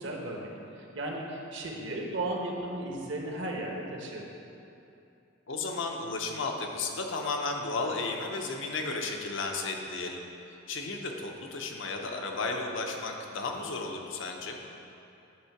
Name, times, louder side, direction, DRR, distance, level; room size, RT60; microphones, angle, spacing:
voice 1, 0.0-4.3, right 1 dB, 60° right, 0 dB, 1.0 m, -35 dB
voice 2, 5.5-10.3 10.7-14.6, left 3 dB, 65° left, 2 dB, 0.7 m, -33 dB
8.6 x 3.6 x 5.8 m, 2.8 s
head